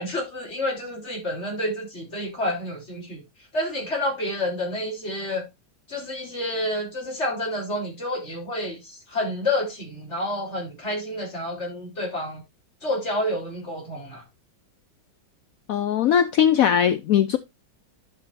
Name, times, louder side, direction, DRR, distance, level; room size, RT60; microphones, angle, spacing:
voice 1, 0.0-3.2 3.5-5.5 5.9-12.4 12.8-14.2, left 1 dB, 35° left, 3.8 m, -29 dB
voice 2, 15.7-17.4, left 9 dB, 75° left, 0.8 m, -20 dB
11.0 x 7.0 x 2.6 m
omnidirectional pair, 2.1 m